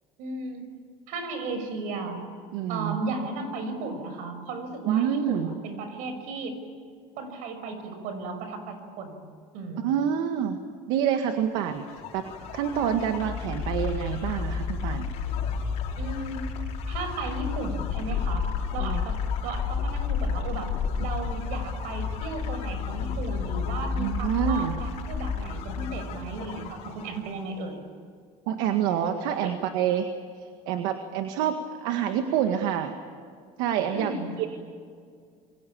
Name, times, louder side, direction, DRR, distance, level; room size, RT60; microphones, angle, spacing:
voice 1, 0.2-0.6 1.1-2.2 2.7-6.6 7.2-9.2 9.5-9.9 16.0-16.4 16.9-20.7 21.0-27.8 29.4-29.5 33.9-34.3, right 3 dB, 70° right, 7 dB, 6.1 m, -35 dB
voice 2, 2.5-3.0 4.8-5.5 9.8-10.6 10.9-11.8 12.1-12.2 12.5-15.1 18.8-19.0 24.0-24.7 28.5-30.1 30.7-32.9 33.6-34.1 34.4-34.5, right 9 dB, 85° right, 6 dB, 1.9 m, -27 dB
sound 1, 11.7-27.4, left 6 dB, 55° left, 5.3 m, -31 dB
28.5 x 23.5 x 8.7 m, 2.1 s
cardioid pair, 160°, 13 cm